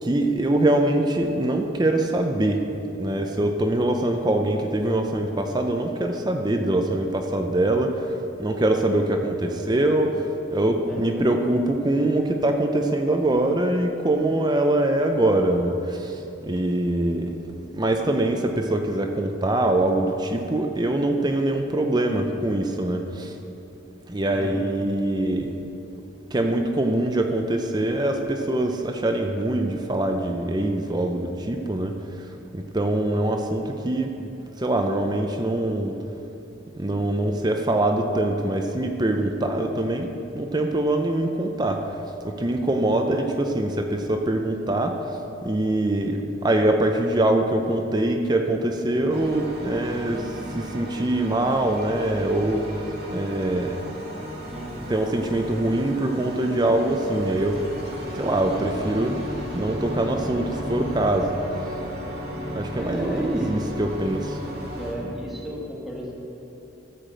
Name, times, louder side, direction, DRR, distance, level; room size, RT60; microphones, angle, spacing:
voice 1, 0.0-2.6 3.0-17.4 17.7-23.3 24.1-25.5 26.3-32.3 32.5-34.1 34.6-36.0 36.7-52.8 53.1-53.8 54.9-57.6 58.1-59.2 59.5-61.3 62.5-64.4, right 1 dB, 20° right, 4 dB, 0.5 m, -23 dB
voice 2, 10.8-11.2 24.3-24.7 34.1-34.3 54.4-54.8 62.7-63.5 64.5-66.2, equal, ahead, -4 dB, 1.7 m, -34 dB
sound 1, 49.1-64.9, equal, 55° right, 2.0 m, -34 dB
13.5 x 5.0 x 7.6 m, 2.8 s
head